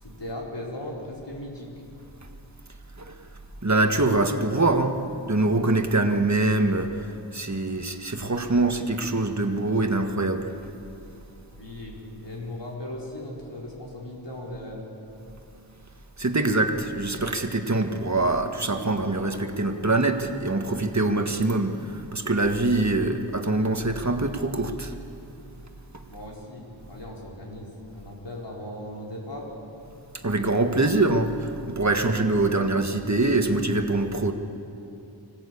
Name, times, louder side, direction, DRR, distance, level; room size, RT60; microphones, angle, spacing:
voice 1, 0.0-1.7 11.6-14.9 26.1-29.5, left 1 dB, 70° left, -3 dB, 4.9 m, -38 dB
voice 2, 3.6-5.0 5.3-7.0 7.3-10.5 16.2-24.9 30.2-34.3, right 2 dB, 40° right, 5 dB, 1.7 m, -24 dB
25.0 x 17.0 x 8.6 m, 2.7 s
wide cardioid pair, 45°, 44 cm